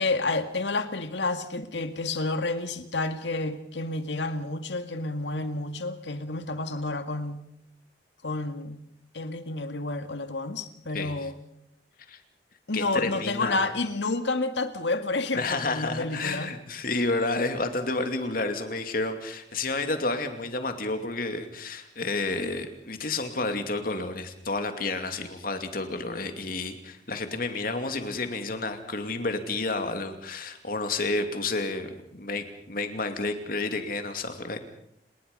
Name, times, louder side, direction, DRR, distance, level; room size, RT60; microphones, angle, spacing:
voice 1, 0.0-7.5 8.2-8.9 9.1-11.4 12.7-16.5, left 2 dB, 85° left, 9 dB, 2.0 m, -30 dB
voice 2, 12.7-13.6 15.3-34.6, left 3 dB, 50° left, 7 dB, 2.7 m, -30 dB
30.0 x 20.0 x 5.5 m, 0.76 s
head